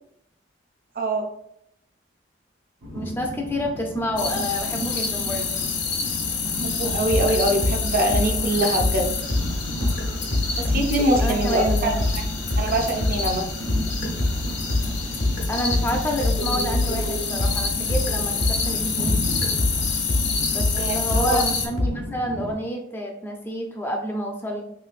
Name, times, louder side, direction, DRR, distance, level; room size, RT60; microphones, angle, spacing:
voice 1, 1.0-1.3 6.6-9.1 10.6-12.2 12.6-13.5 20.7-21.4, right 1 dB, 50° right, 3 dB, 0.5 m, -23 dB
Train, 2.8-22.5, equal, 90° right, 0.8 m, -34 dB
voice 2, 2.9-5.5 11.2-11.9 15.5-19.1 20.5-24.6, equal, 10° left, 2 dB, 0.3 m, -29 dB
sound 1, 4.2-21.7, left 5 dB, 65° left, 0.5 m, -28 dB
sound 2, 6.8-18.8 19.1-21.9, left 2 dB, 85° left, 0.9 m, -26 dB
3.2 x 3.1 x 2.4 m, 0.75 s
head